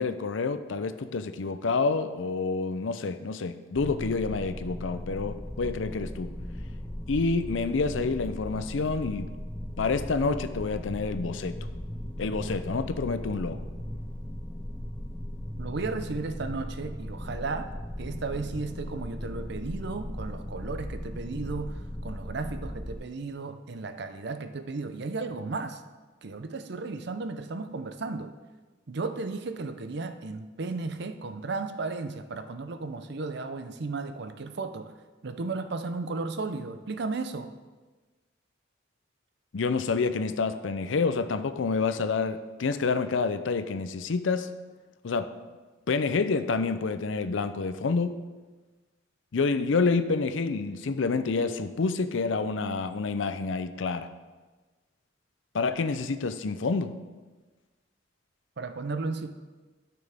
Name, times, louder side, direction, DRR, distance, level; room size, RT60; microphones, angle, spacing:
voice 1, 0.0-6.3 7.1-9.3 9.8-11.5 12.2-13.6 39.5-44.5 45.0-45.3 45.9-48.1 49.3-54.1 55.5-56.9, left 4 dB, 80° left, 11 dB, 0.5 m, -28 dB
sound 1, 3.7-23.0, equal, 10° left, 0.4 m, -37 dB
voice 2, 15.6-17.7 18.0-25.8 26.2-28.3 28.9-34.9 35.2-37.5 58.6-59.3, right 3 dB, 60° right, 9 dB, 0.6 m, -34 dB
12.5 x 6.0 x 3.5 m, 1.3 s
head